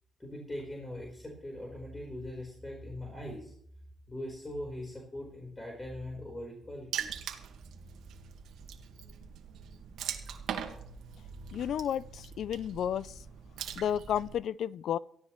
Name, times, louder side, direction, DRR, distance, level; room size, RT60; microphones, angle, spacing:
voice 1, 0.2-3.5 4.1-7.1, left 1 dB, 20° left, 4.4 m, -41 dB
Water / Splash splatter, 6.9-14.4, right 8 dB, 80° right, 1.8 m, -42 dB
voice 2, 11.5-13.1 13.8-15.0, left 9 dB, 70° left, 0.4 m, -32 dB
18.0 x 15.5 x 3.2 m
cardioid pair, 90°, 0 cm